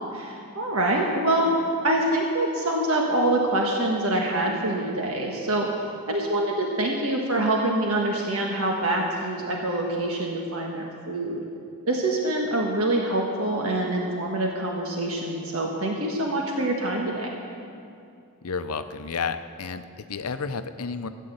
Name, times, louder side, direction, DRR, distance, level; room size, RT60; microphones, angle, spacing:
voice 1, 0.1-1.5 1.8-5.7 6.1-11.4 11.9-17.3, right 1 dB, 70° right, -1 dB, 1.5 m, -25 dB
voice 2, 18.4-21.1, left 5 dB, 80° left, 10 dB, 0.7 m, -31 dB
14.0 x 9.2 x 7.9 m, 2.5 s
head